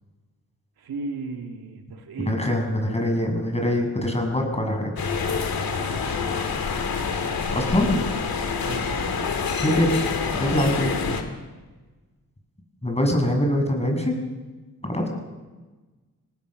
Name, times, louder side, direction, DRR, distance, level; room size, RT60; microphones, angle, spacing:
voice 1, 0.8-2.4 5.6-6.2 8.6-8.9 11.1-11.2 15.0-15.1, right 3 dB, 90° right, 3 dB, 2.5 m, -36 dB
voice 2, 2.3-4.9 7.5-8.0 9.6-10.0 10.4-10.9 12.8-14.2 14.8-15.1, left 1 dB, 15° left, 2 dB, 7.1 m, -23 dB
sound 1, 5.0-11.2, left 5 dB, 80° left, 2.7 m, -27 dB
26.5 x 19.0 x 6.6 m, 1.3 s
cardioid pair, 60°, 36 cm